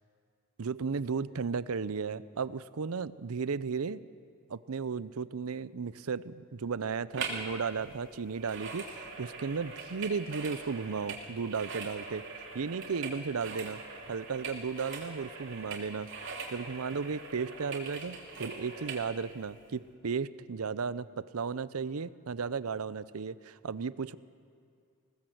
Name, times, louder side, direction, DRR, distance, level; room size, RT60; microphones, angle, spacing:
voice 1, 0.6-4.0 4.5-12.3 12.5-13.8 14.1-16.1 16.5-24.2, right 5 dB, 80° right, 17 dB, 0.6 m, -35 dB
sound 1, 7.1-7.5 7.8-19.1 19.6-19.7, right 4 dB, 60° right, 3.2 m, -42 dB
20.5 x 18.5 x 7.9 m, 2.2 s
head